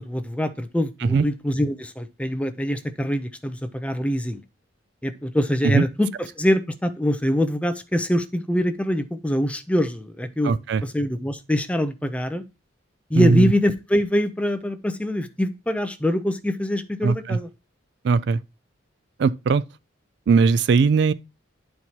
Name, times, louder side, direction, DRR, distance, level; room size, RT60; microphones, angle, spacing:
voice 1, 0.0-4.4 5.0-10.5 10.8-12.4 13.1-17.5, equal, 5° left, 0.5 m, -24 dB
voice 2, 10.4-10.8 13.1-13.5 17.0-17.4 18.0-18.4 19.2-19.6 20.3-21.1, right 4 dB, 55° right, 0.3 m, -19 dB
11.0 x 4.5 x 2.8 m
head